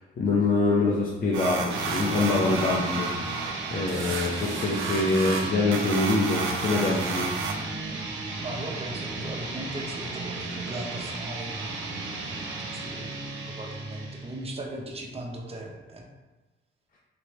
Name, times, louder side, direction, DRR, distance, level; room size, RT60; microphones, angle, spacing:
voice 1, 0.2-3.1 3.7-7.3, left 3 dB, 45° left, -5 dB, 0.7 m, -25 dB
sound 1, 1.3-7.5, right 4 dB, 85° right, 0.6 m, -32 dB
sound 2, 1.7-14.5, right 3 dB, 70° right, 1.0 m, -35 dB
voice 2, 8.4-13.1 13.4-16.1, right 1 dB, 30° right, 0 dB, 0.9 m, -38 dB
4.3 x 3.1 x 3.2 m, 1.2 s
cardioid pair, 90°, 20 cm